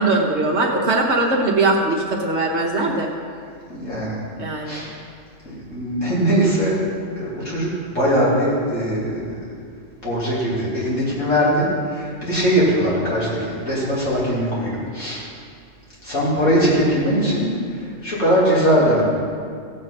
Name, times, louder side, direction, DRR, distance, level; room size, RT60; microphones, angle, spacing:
voice 1, 0.0-3.1 4.4-4.9, right 2 dB, 65° right, -1 dB, 1.3 m, -20 dB
voice 2, 3.7-4.2 4.6-4.9 5.5-6.8 7.2-9.4 10.0-15.2 16.0-19.0, equal, 85° left, -8 dB, 4.1 m, -21 dB
15.0 x 7.9 x 5.9 m, 2.2 s
omnidirectional pair, 1.3 m